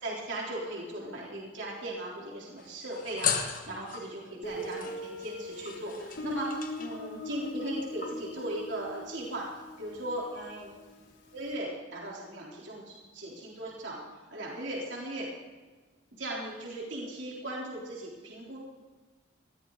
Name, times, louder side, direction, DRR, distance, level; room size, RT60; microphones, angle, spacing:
voice 1, 0.0-9.5 9.8-10.7 11.3-14.0 14.3-15.3 16.2-18.6, right 1 dB, 70° right, -4 dB, 3.8 m, -38 dB
sound 1, 2.6-4.2 4.6-7.7 8.0-8.4, left 7 dB, 45° left, 1.4 m, -37 dB
Guitar, 4.4-11.1, left 1 dB, 65° left, 5.0 m, -40 dB
19.5 x 14.5 x 4.1 m, 1.3 s
head